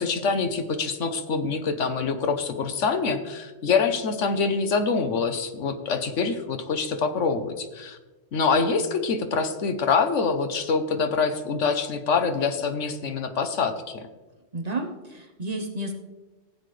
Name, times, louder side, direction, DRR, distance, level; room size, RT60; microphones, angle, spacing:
voice 1, 0.0-8.0 8.3-14.0, left 5 dB, 80° left, 8 dB, 1.3 m, -25 dB
voice 2, 14.5-15.9, right 2 dB, 35° right, 3 dB, 0.9 m, -31 dB
15.0 x 8.8 x 3.3 m, 1.2 s
omnidirectional pair, 1.2 m